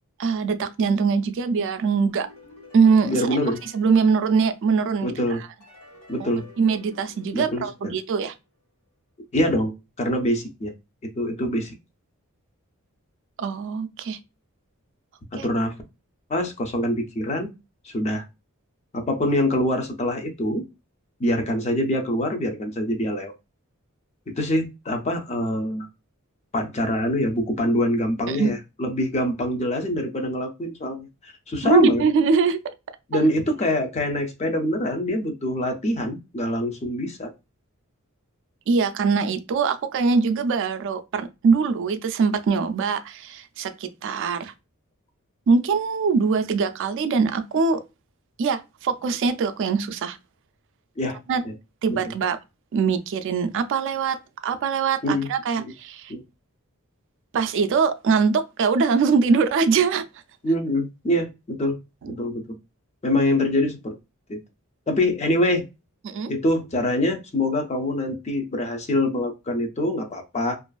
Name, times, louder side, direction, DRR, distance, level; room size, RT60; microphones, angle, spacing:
voice 1, 0.2-2.3 2.7-5.1 6.2-6.3 6.6-8.3 13.4-14.2 15.4-15.5 28.3-28.5 31.6-32.7 38.7-44.5 45.5-47.8 48.4-50.2 51.3-51.4 51.8-52.4 52.7-54.2 54.4-56.1 57.3-60.0 62.0-62.1 66.0-66.3, right 5 dB, 55° right, 0.3 m, -22 dB
sound 1, 2.1-4.9 5.6-8.4, left 2 dB, 90° left, 1.4 m, -50 dB
voice 2, 3.0-3.6 5.0-5.4 6.1-6.4 7.3-7.9 9.3-9.7 10.0-10.7 11.0-11.7 15.3-15.7 16.3-17.5 17.8-18.2 18.9-20.6 21.2-23.3 24.3-25.9 26.5-32.0 33.1-37.3 51.0-51.2 51.4-51.5 51.9-52.1 55.0-55.3 55.6-55.7 56.1-56.2 60.4-61.8 62.1-62.4 63.0-63.9 64.3-64.4 64.9-65.6 66.3-70.6, left 1 dB, 30° left, 0.4 m, -24 dB
2.4 x 2.3 x 2.2 m
head